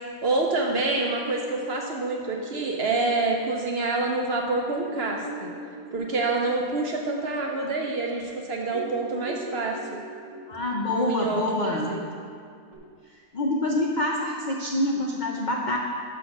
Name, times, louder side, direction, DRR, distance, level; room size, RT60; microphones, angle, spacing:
voice 1, 0.2-5.5 5.9-9.8 10.9-12.0, right 3 dB, 55° right, 1 dB, 0.7 m, -27 dB
sound 1, 0.7-3.8 4.3-4.4 4.7-8.3 8.6-12.8, right 2 dB, 25° right, 1.2 m, -41 dB
voice 2, 10.5-12.0 13.3-15.8, left 1 dB, 75° left, 0 dB, 0.4 m, -26 dB
6.1 x 5.9 x 6.0 m, 2.2 s
omnidirectional pair, 1.6 m